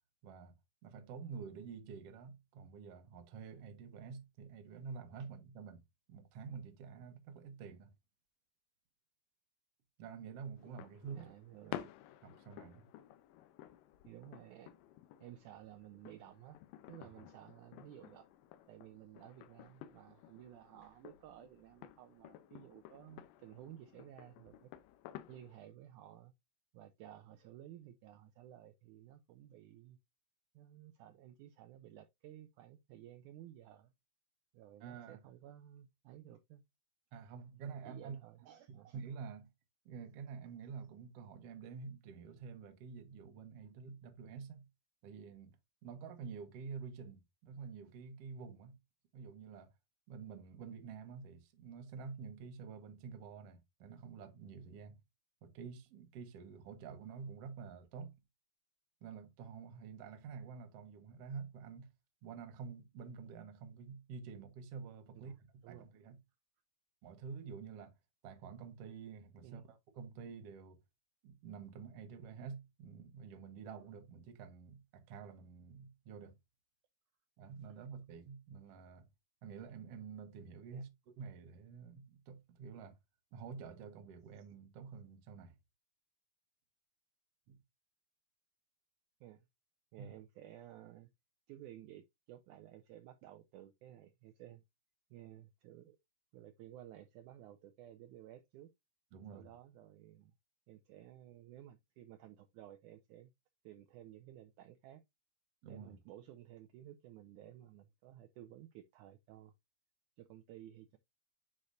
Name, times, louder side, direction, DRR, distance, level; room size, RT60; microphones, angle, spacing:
voice 1, 0.2-0.5 0.8-5.8 6.1-7.9 10.0-11.3 11.7-11.9 12.2-12.9 17.1-17.3 34.8-35.2 37.1-38.2 38.7-39.5 39.8-44.7 45.0-45.6 45.8-48.8 49.1-49.7 50.1-55.0 55.4-58.1 59.0-61.9 62.2-65.3 65.7-66.2 67.0-67.9 68.2-70.8 71.2-76.4 77.4-79.1 79.4-83.0 83.3-85.6 87.5-87.6 90.0-90.1 99.1-99.5 105.6-106.0, right 6 dB, 65° right, 1.7 m, -49 dB
sound 1, 10.6-25.6, left 12 dB, 80° left, 2.3 m, -53 dB
voice 2, 11.1-11.8 14.0-14.7 15.2-16.6 16.9-18.3 18.7-24.7 25.3-26.3 26.7-30.0 30.5-33.9 34.5-36.6 37.5-39.0 65.1-65.4 65.6-65.9 69.4-69.6 80.7-80.8 89.2-89.4 89.9-91.1 91.5-94.6 95.1-96.0 96.3-98.7 99.3-100.3 100.7-103.3 103.6-105.0 105.7-109.5 110.2-111.0, right 12 dB, 80° right, 1.8 m, -55 dB
9.7 x 4.3 x 2.5 m
omnidirectional pair, 4.0 m